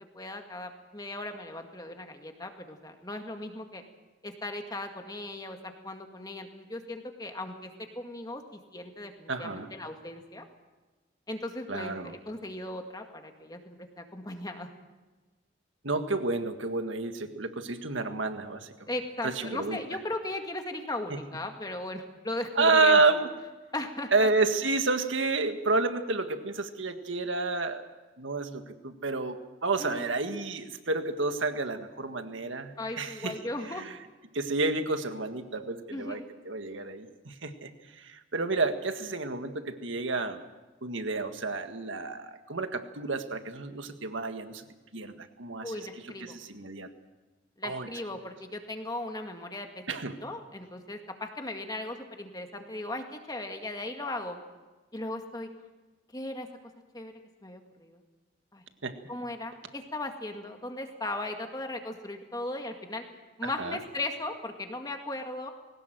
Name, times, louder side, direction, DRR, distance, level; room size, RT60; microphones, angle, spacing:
voice 1, 0.1-3.8 4.2-10.5 11.3-14.7 18.9-23.0 23.7-24.3 29.8-30.1 32.8-33.9 35.9-36.3 45.6-46.4 47.6-49.7 50.2-54.4 54.9-55.5 56.1-56.5 56.9-57.1 57.4-58.0 58.5-58.6 59.1-63.0 63.4-65.5, left 2 dB, 20° left, 4 dB, 2.0 m, -37 dB
voice 2, 9.3-9.7 11.7-12.1 15.8-18.9 19.2-19.8 22.6-23.3 24.1-27.8 28.2-33.3 33.7-33.9 34.3-36.2 36.4-37.7 38.0-40.4 40.8-44.6 44.9-45.7 46.2-46.9 47.6-47.9 49.9-50.2 58.8-59.0 63.6-63.8, right 3 dB, 80° right, 7 dB, 1.8 m, -30 dB
21.5 x 18.5 x 7.8 m, 1.2 s
head